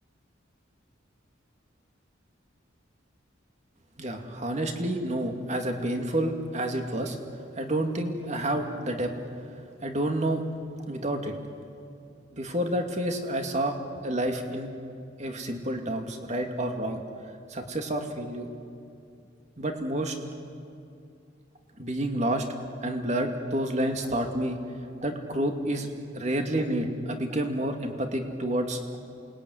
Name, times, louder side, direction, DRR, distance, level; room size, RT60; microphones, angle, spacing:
voice 1, 4.0-7.2 7.6-9.1 9.8-10.4 10.9-11.3 12.3-13.8 14.0-14.7 15.2-17.0 17.5-18.5 19.6-20.1 21.8-22.5 22.8-24.6 25.0-25.9 26.1-28.8, right 1 dB, 35° right, 4 dB, 2.5 m, -29 dB
28.0 x 21.0 x 9.7 m, 2.5 s
head